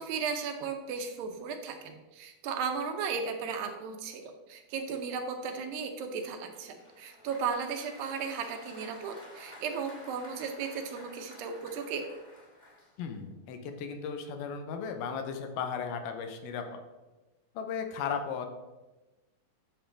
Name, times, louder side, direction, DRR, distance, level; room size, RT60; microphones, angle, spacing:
voice 1, 0.0-12.1, right 5 dB, 80° right, 5 dB, 2.4 m, -35 dB
Applause, 6.2-13.3, left 1 dB, 25° left, 1.0 m, -52 dB
voice 2, 13.0-16.8 17.6-18.5, left 6 dB, 85° left, 6 dB, 2.7 m, -36 dB
9.2 x 6.7 x 3.4 m, 1.1 s
omnidirectional pair, 4.3 m